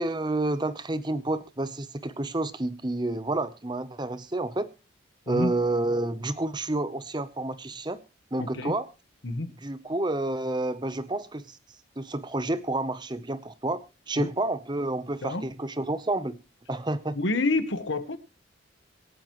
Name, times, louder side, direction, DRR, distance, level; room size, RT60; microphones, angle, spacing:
voice 1, 0.0-4.7 5.3-8.0 8.3-8.9 9.6-11.6 12.0-13.8 14.1-16.4 16.7-17.2, right 2 dB, 20° right, 13 dB, 0.8 m, -29 dB
voice 2, 8.4-8.8 9.2-9.5 14.2-14.3 15.2-15.4 17.1-18.2, left 2 dB, 65° left, 10 dB, 1.3 m, -28 dB
25.5 x 9.0 x 3.1 m, 0.31 s
head